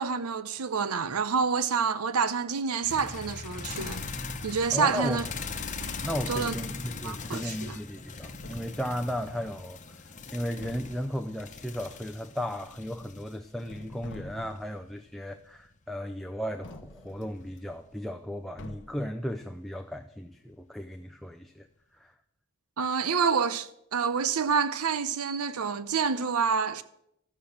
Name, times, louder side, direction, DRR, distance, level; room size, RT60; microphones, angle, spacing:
voice 1, 0.0-4.0 4.4-5.2 5.8-5.9 6.3-6.5 7.0-7.8 22.8-26.8, right 5 dB, 85° right, 0.7 m, -28 dB
sound 1, 2.8-15.7 17.3-18.0 19.7-19.8, left 4 dB, 35° left, 1.0 m, -40 dB
sound 2, 3.7-4.3 6.0-6.6 7.9-8.0 8.4-9.6 10.1-10.3 10.6-11.1 12.6-13.3 13.6-14.7 16.6-17.6 18.6-19.1, left 2 dB, 55° left, 0.8 m, -46 dB
voice 2, 4.7-5.2 6.0-9.8 10.3-21.7 21.9-22.1, equal, ahead, 0.5 m, -35 dB
13.0 x 6.7 x 7.1 m
head